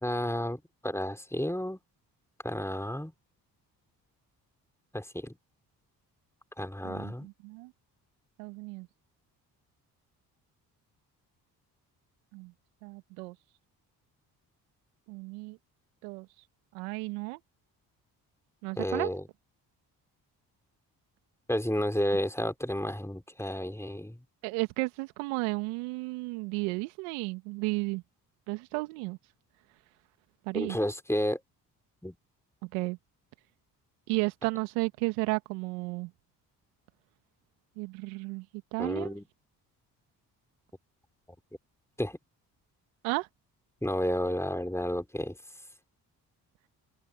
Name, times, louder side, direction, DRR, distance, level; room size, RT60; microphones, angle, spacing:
voice 1, 0.0-1.8 2.4-3.1 4.9-5.4 6.6-7.3 18.8-19.2 21.5-24.2 30.5-31.4 32.0-32.2 38.8-39.2 42.0-42.2 43.8-45.4, left 1 dB, 5° left, 4.3 m, -31 dB
voice 2, 6.8-7.7 8.4-8.9 12.3-12.5 12.8-13.4 15.1-15.6 16.0-16.3 16.7-17.4 18.6-19.1 24.4-28.0 28.5-29.2 30.5-30.8 32.6-33.0 34.1-36.1 37.8-38.5 38.7-39.2 43.0-43.3, right 26 dB, 80° right, 2.0 m, -33 dB
open air
hypercardioid pair, 45°, 49 cm